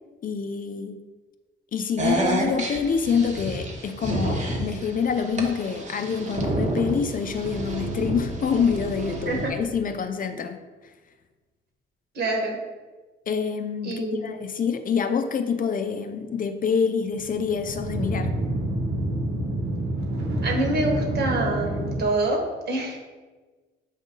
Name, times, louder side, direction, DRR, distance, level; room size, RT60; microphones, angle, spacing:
voice 1, 0.2-1.0 1.7-10.6 13.3-18.4, left 6 dB, 45° left, 8 dB, 0.5 m, -26 dB
sound 1, 2.0-9.5, right 2 dB, 35° right, 1.1 m, -29 dB
voice 2, 12.1-12.6 13.8-14.4 20.4-23.0, right 2 dB, 55° right, 0 dB, 1.6 m, -26 dB
sound 2, 17.1-22.0, right 1 dB, 80° right, 1.0 m, -28 dB
7.2 x 2.6 x 5.3 m, 1.3 s
cardioid pair, 90°, 20 cm